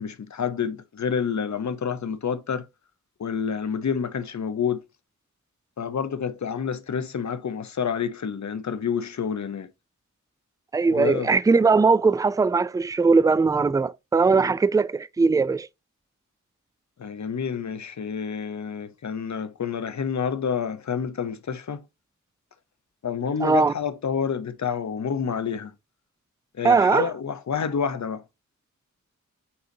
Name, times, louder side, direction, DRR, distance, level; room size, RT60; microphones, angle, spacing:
voice 1, 0.0-2.7 3.2-4.8 5.8-9.7 10.8-11.3 17.0-21.8 23.0-25.7 26.6-28.2, left 7 dB, 60° left, 0.9 m, -28 dB
voice 2, 10.7-15.7 23.4-23.7 26.6-27.1, right 4 dB, 10° right, 0.3 m, -20 dB
8.6 x 4.0 x 2.8 m
wide cardioid pair, 80°, 31 cm